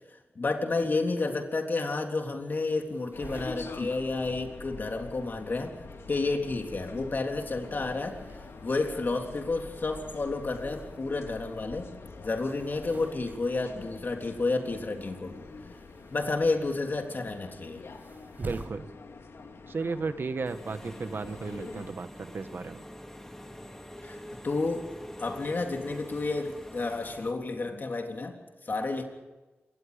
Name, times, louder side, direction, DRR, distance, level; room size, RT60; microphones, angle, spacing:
voice 1, 0.4-8.2 8.6-11.9 12.2-15.4 16.1-17.8 24.0-24.9 25.2-29.0, left 3 dB, 50° left, 3 dB, 3.5 m, -31 dB
sound 1, 2.2-18.7, right 2 dB, 45° right, 5.4 m, -50 dB
sound 2, 3.1-21.9, left 3 dB, 85° left, 3.0 m, -46 dB
voice 2, 18.4-18.9 19.7-22.8, right 4 dB, 60° right, 10 dB, 1.4 m, -34 dB
Engine / Mechanisms, 20.5-27.3, left 1 dB, 10° left, 3.1 m, -45 dB
27.0 x 24.0 x 5.2 m, 1.2 s
wide cardioid pair, 110°, 4 cm